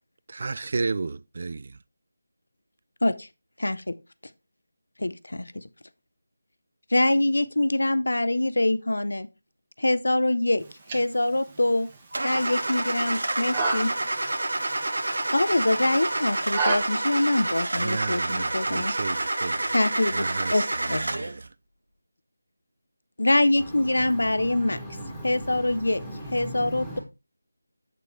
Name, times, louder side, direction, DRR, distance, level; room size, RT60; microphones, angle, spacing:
voice 1, 0.3-1.7 17.8-19.6 20.1-20.6 21.1-21.3, right 3 dB, 45° right, 0.3 m, -32 dB
voice 2, 3.6-4.0 5.0-5.6 6.9-9.3 9.8-10.6 10.9-11.9 12.2-13.9 15.3-18.9 19.7-21.1 23.2-24.8 25.2-26.0 26.3-27.0, left 1 dB, 75° left, 0.7 m, -24 dB
sound 1, 10.6-16.8, right 3 dB, 25° right, 1.4 m, -33 dB
Car / Engine starting, 12.1-21.4, right 2 dB, 70° right, 1.1 m, -28 dB
sound 2, 12.1-18.4, right 1 dB, 85° right, 1.7 m, -45 dB
voice 3, 23.6-27.0, equal, 5° left, 2.2 m, -38 dB
8.2 x 6.7 x 3.1 m
figure-of-eight pair, 165°, 0 cm